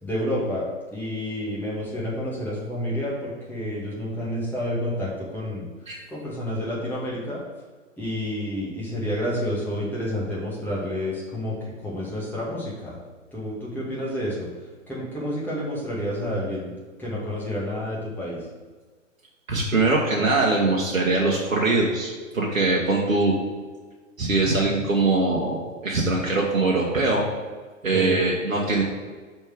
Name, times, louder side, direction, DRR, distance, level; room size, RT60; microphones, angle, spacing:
voice 1, 0.0-5.7 6.1-7.4 8.0-13.0 13.3-14.5 14.9-16.7 17.0-18.5 27.9-28.2, equal, 5° left, -7 dB, 2.1 m, -29 dB
voice 2, 19.5-23.4 24.2-27.2 27.8-28.8, right 3 dB, 85° right, -3 dB, 1.4 m, -22 dB
5.9 x 4.4 x 6.4 m, 1.4 s
figure-of-eight pair, 125°, 39 cm